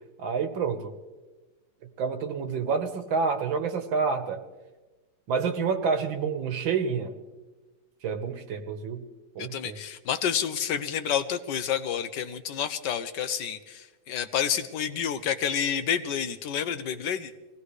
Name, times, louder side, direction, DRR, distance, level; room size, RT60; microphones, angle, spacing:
voice 1, 0.2-0.9 2.0-4.4 5.3-7.1 8.0-9.0 9.4-9.8, right 5 dB, 80° right, 7 dB, 1.9 m, -28 dB
voice 2, 9.4-17.3, left 8 dB, 70° left, 10 dB, 1.2 m, -29 dB
23.5 x 17.0 x 3.3 m, 1.2 s
omnidirectional pair, 2.2 m